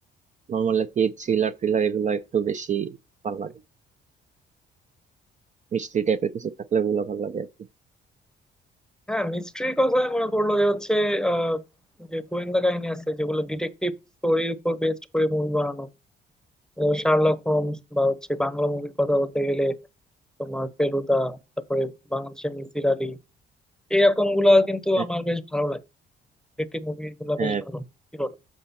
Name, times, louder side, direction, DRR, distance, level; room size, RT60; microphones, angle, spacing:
voice 1, 0.5-3.0 3.2-3.5 5.7-7.5 27.4-27.6, right 7 dB, 40° right, 0.5 m, -25 dB
voice 2, 9.1-11.6 12.1-13.9 14.2-15.9 16.8-19.8 20.4-21.4 21.7-23.2 23.9-25.8 26.6-27.8 28.1-28.3, left 1 dB, 5° left, 0.8 m, -24 dB
7.9 x 4.8 x 4.2 m
cardioid pair, 90°, 20 cm